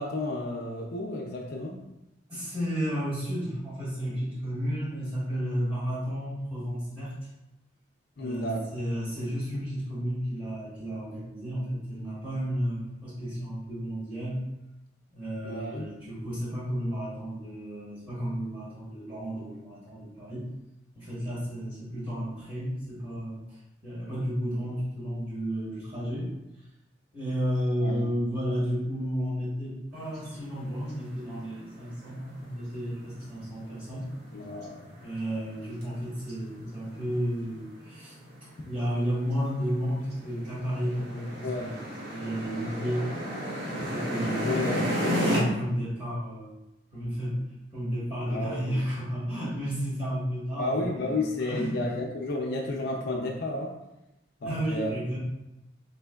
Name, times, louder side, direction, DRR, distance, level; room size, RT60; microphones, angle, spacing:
voice 1, 0.0-1.8 8.2-8.6 15.4-15.9 27.8-28.1 34.3-35.0 41.4-41.7 44.4-45.3 48.3-48.8 50.6-53.7 54.4-54.9, left 2 dB, 60° left, 0 dB, 0.5 m, -32 dB
voice 2, 2.3-7.3 8.2-14.4 15.1-20.5 20.9-26.6 27.1-34.1 35.0-43.1 43.7-46.5 46.9-51.8 54.4-55.2, equal, 30° right, -9 dB, 1.4 m, -32 dB
sound 1, 29.9-45.4, equal, 65° right, 1.3 m, -34 dB
4.4 x 3.3 x 2.3 m, 0.93 s
head